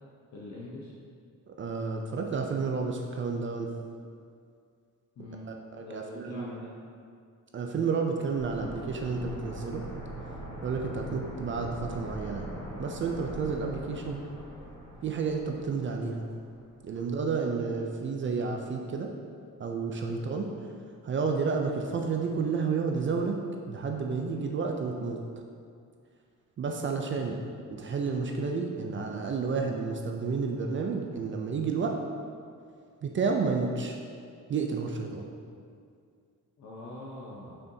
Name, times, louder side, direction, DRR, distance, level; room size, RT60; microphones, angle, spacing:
voice 1, 0.3-0.9 5.2-5.5 5.8-6.7 16.9-17.0 20.0-20.2 36.6-37.6, left 2 dB, 55° left, -4 dB, 0.8 m, -43 dB
voice 2, 1.6-3.7 5.4-6.5 7.5-9.8 10.6-12.5 12.8-14.2 15.0-16.3 16.8-19.1 19.6-20.5 21.0-23.4 23.7-25.2 26.6-27.4 27.7-32.0 33.0-34.0 34.5-35.3, right 5 dB, 40° right, 2 dB, 0.4 m, -31 dB
sound 1, 8.3-17.1 17.3-17.4, equal, 15° left, 1.2 m, -42 dB
6.5 x 5.6 x 2.7 m, 2.2 s
wide cardioid pair, 175°, 33 cm